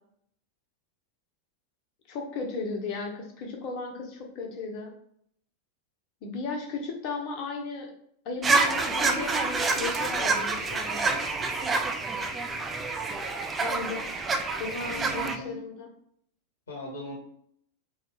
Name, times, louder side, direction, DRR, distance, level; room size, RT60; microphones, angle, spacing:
voice 1, 2.1-4.9 6.2-7.9 8.2-11.2 13.6-14.2 14.6-15.9, left 4 dB, 40° left, 1 dB, 0.9 m, -35 dB
sound 1, 8.4-15.4, right 3 dB, 15° right, 0.4 m, -27 dB
voice 2, 14.9-15.6 16.7-17.2, left 1 dB, 70° left, -2 dB, 1.1 m, -38 dB
3.4 x 2.4 x 4.0 m, 0.68 s
figure-of-eight pair, 90°, 0 cm